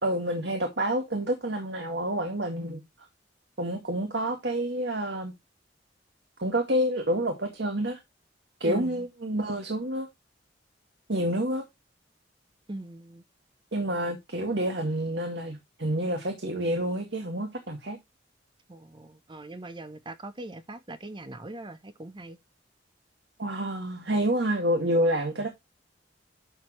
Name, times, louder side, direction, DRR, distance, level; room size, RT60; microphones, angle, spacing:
voice 1, 0.0-2.8 3.6-5.3 6.4-8.0 8.6-10.1 11.1-11.6 13.7-18.0 23.4-25.5, right 1 dB, 70° right, 2.1 m, -28 dB
voice 2, 8.6-9.0 12.7-13.2 18.7-22.4, right 2 dB, 25° right, 0.8 m, -40 dB
11.5 x 6.6 x 3.1 m
head